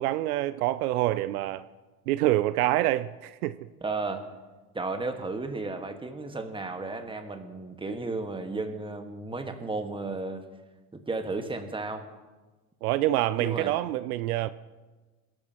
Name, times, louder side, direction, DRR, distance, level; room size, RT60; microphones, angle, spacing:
voice 1, 0.0-1.6 2.1-3.5 12.8-14.5, right 15 dB, 75° right, 15 dB, 0.6 m, -26 dB
voice 2, 3.8-4.2 4.7-10.4 10.9-12.0 13.4-13.7, right 3 dB, 10° right, 6 dB, 1.6 m, -33 dB
21.5 x 12.5 x 3.0 m, 1.2 s
hypercardioid pair, 90°, 45 cm